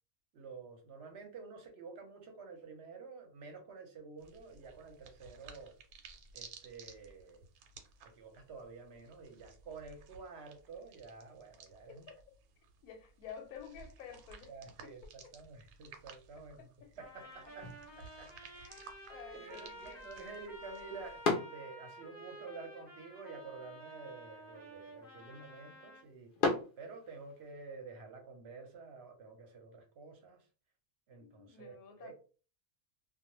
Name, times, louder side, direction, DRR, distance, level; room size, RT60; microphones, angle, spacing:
voice 1, 0.3-5.8 6.3-7.4 8.0-12.1 14.5-16.7 17.0-17.7 18.0-18.3 18.6-18.7 19.3-26.3 26.8-30.5 31.1-32.1, right 4 dB, 55° right, 0.8 m, -50 dB
sound 1, 4.2-21.3, right 5 dB, 80° right, 1.0 m, -57 dB
voice 2, 11.9-12.2 12.8-14.5 14.8-15.1 16.6-16.9 18.5-20.4 31.1-32.1, left 7 dB, 85° left, 1.0 m, -51 dB
Trumpet, 17.0-26.0, right 1 dB, 10° right, 0.8 m, -52 dB
sound 2, 17.5-27.5, left 3 dB, 55° left, 0.6 m, -41 dB
2.3 x 2.2 x 2.9 m
omnidirectional pair, 1.5 m